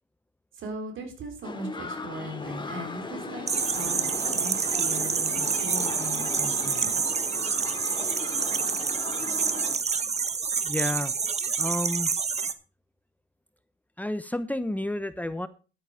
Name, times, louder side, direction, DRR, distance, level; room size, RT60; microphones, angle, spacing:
voice 1, 0.5-3.4 3.7-7.2, right 1 dB, 75° right, 5 dB, 4.1 m, -38 dB
sound 1, 1.4-9.8, left 3 dB, 25° left, 2.3 m, -38 dB
sound 2, 3.5-12.5, right 5 dB, 35° right, 1.0 m, -27 dB
voice 2, 10.6-11.1 11.6-12.1 14.0-15.5, left 1 dB, 10° left, 13 dB, 0.8 m, -30 dB
11.0 x 9.6 x 5.0 m, 0.34 s
cardioid pair, 90°, 20 cm